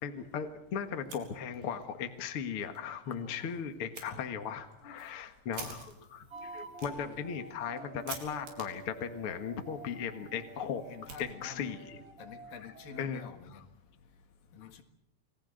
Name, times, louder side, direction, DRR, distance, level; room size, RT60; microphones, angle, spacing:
voice 1, 0.0-10.8 11.2-12.0 13.0-13.3 14.6-14.8, left 7 dB, 50° left, 6 dB, 1.8 m, -37 dB
Fire, 0.9-1.9 2.2-2.3 2.7-2.8 3.9-4.1 4.7-11.8, right 6 dB, 75° right, 5.6 m, -50 dB
sound 1, 6.3-13.2, right 3 dB, 20° right, 2.5 m, -49 dB
voice 2, 6.9-7.3 10.9-11.7 12.2-13.6 14.5-14.8, left 6 dB, 65° left, 7 dB, 3.3 m, -48 dB
28.5 x 21.0 x 6.6 m, 0.81 s
omnidirectional pair, 4.8 m